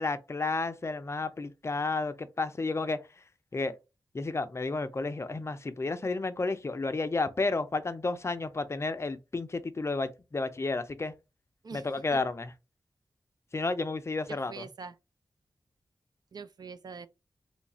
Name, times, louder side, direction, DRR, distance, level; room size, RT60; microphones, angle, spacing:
voice 1, 0.0-3.0 3.5-3.8 4.1-11.1 11.7-12.5 13.5-14.6, left 3 dB, 35° left, 0.4 m, -31 dB
voice 2, 14.3-14.9 16.3-17.1, right 5 dB, 60° right, 0.4 m, -43 dB
3.1 x 2.4 x 4.1 m
wide cardioid pair, 80°, 8 cm